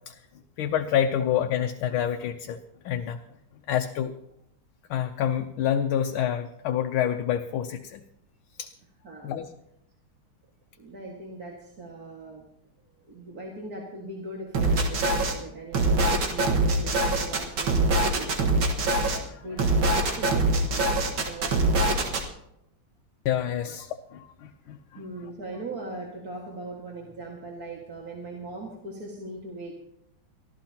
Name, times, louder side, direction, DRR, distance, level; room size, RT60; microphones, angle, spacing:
voice 1, 0.6-2.6 2.8-3.2 3.7-4.1 4.9-8.0 8.6-8.7 9.2-9.5 19.0-19.4 20.9-21.3 23.2-23.9 24.1-25.0, left 9 dB, 80° left, 5 dB, 1.5 m, -28 dB
voice 2, 10.8-12.5 13.1-18.7 19.4-22.2 25.0-29.7, right 2 dB, 45° right, -2 dB, 2.3 m, -40 dB
sound 1, 14.5-15.3 15.7-19.2 19.6-22.2, right 2 dB, 65° right, 2.4 m, -23 dB
23.5 x 15.0 x 2.9 m, 0.80 s
omnidirectional pair, 2.3 m